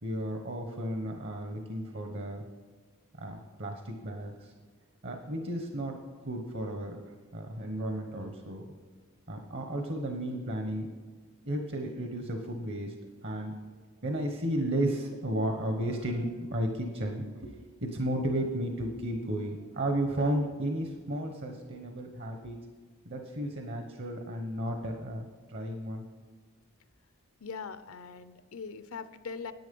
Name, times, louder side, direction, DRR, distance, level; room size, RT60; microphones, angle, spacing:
voice 1, 0.0-2.4 3.2-4.5 5.0-7.0 7.3-8.6 9.3-10.9 11.4-12.9 13.2-13.6 14.0-22.6 23.0-26.1, right 1 dB, 55° right, 4 dB, 1.1 m, -33 dB
voice 2, 27.4-29.5, left 5 dB, 75° left, 12 dB, 0.7 m, -41 dB
10.5 x 8.9 x 5.3 m, 1.5 s
head